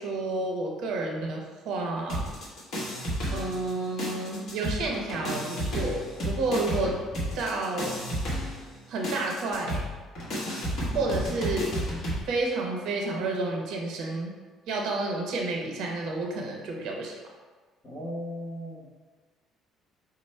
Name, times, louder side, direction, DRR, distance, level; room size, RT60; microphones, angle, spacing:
voice 1, 0.0-2.2 3.3-7.0 7.3-7.9 8.9-9.8 10.9-11.7 12.3-14.3 14.7-17.2, right 2 dB, 70° right, 0 dB, 0.8 m, -30 dB
sound 1, 2.1-3.7 4.0-12.2, equal, 60° left, 1.2 m, -32 dB
voice 2, 17.8-18.9, equal, 25° left, -3 dB, 1.1 m, -37 dB
4.9 x 2.1 x 4.3 m, 1.3 s
cardioid pair, 135°, 0 cm